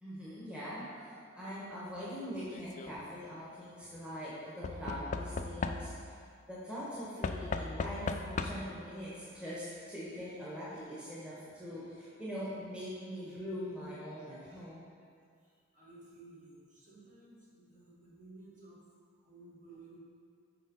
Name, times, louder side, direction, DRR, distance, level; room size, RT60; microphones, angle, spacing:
voice 1, 0.0-6.2 6.5-14.8, equal, 5° right, -9 dB, 1.6 m, -42 dB
Knock / Wood, 2.4-2.9 4.6-6.2 7.2-8.8 9.9-10.0 10.2-10.3, left 4 dB, 35° left, 0.4 m, -37 dB
voice 2, 15.4-18.8 19.2-20.0, right 2 dB, 40° right, -7 dB, 2.2 m, -55 dB
7.5 x 5.0 x 5.6 m, 2.2 s
head